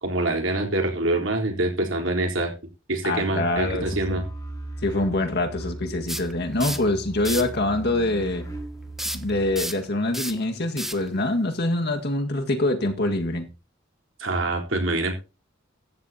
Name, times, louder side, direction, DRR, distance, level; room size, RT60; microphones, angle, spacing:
voice 1, 0.0-2.5 2.9-4.2 14.2-15.2, right 2 dB, 65° right, 3.9 m, -25 dB
voice 2, 3.0-4.2 4.8-8.5 9.1-13.5, left 2 dB, 55° left, 1.8 m, -25 dB
sound 1, 3.5-9.6, right 2 dB, 20° left, 5.7 m, -37 dB
sound 2, 6.1-6.9 7.2-7.6 9.0-12.0, right 1 dB, ahead, 1.1 m, -32 dB
16.0 x 13.0 x 2.9 m
head